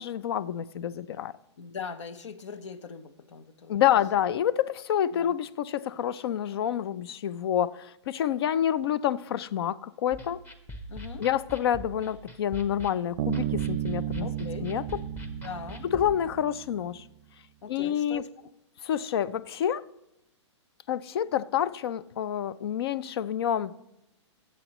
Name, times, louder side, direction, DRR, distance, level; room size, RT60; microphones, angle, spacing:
voice 1, 0.0-1.3 3.7-10.4 11.2-14.3 14.6-14.8 15.9-17.0 17.7-18.2 18.8-19.9 20.9-23.7, left 10 dB, 55° left, 0.6 m, -28 dB
voice 2, 1.6-3.8 5.1-5.3 10.9-11.3 14.2-14.7 15.4-15.8 17.6-18.5, left 6 dB, 75° left, 1.1 m, -41 dB
sound 1, 10.1-16.1, equal, 15° left, 0.9 m, -43 dB
Bass guitar, 13.2-16.7, right 13 dB, 45° right, 0.5 m, -33 dB
22.0 x 8.1 x 3.1 m
hypercardioid pair, 145°, 15 cm